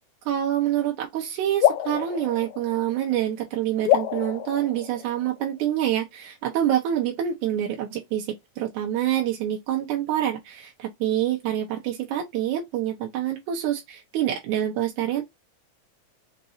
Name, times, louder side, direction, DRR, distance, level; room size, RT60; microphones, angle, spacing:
voice 1, 0.3-15.2, right 11 dB, 85° right, 2.4 m, -26 dB
sound 1, 1.6-3.3 3.8-5.5, left 11 dB, 90° left, 1.3 m, -26 dB
5.9 x 2.8 x 2.5 m
omnidirectional pair, 3.4 m